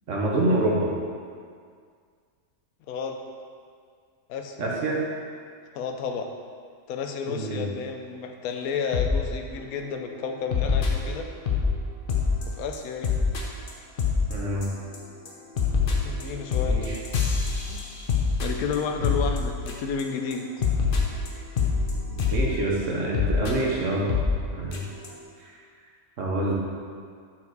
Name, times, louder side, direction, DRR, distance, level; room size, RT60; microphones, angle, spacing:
voice 1, 0.1-0.9 4.6-5.0 7.3-7.6 14.3-14.7 16.6-17.0 22.1-24.1 24.5-24.8 25.4-25.6 26.2-26.5, right 2 dB, 60° right, -3 dB, 1.2 m, -26 dB
voice 2, 2.9-3.2 4.3-4.6 5.7-6.3 6.9-11.3 12.5-13.1 16.0-16.8 17.7-17.8 18.4-20.5, left 6 dB, 75° left, 4 dB, 1.0 m, -31 dB
sound 1, 8.9-9.2 9.6-9.8 10.5-11.7 12.1-12.4 12.7-12.8 13.0-13.4 13.7-13.8 14.0-14.3 14.6-15.0 15.2-20.0 20.3-20.4 20.6-22.4 23.1-23.5 24.1-24.3 24.7-24.8 25.0-25.1, left 5 dB, 45° left, 0.8 m, -25 dB
5.9 x 4.4 x 4.6 m, 2.1 s
omnidirectional pair, 1.5 m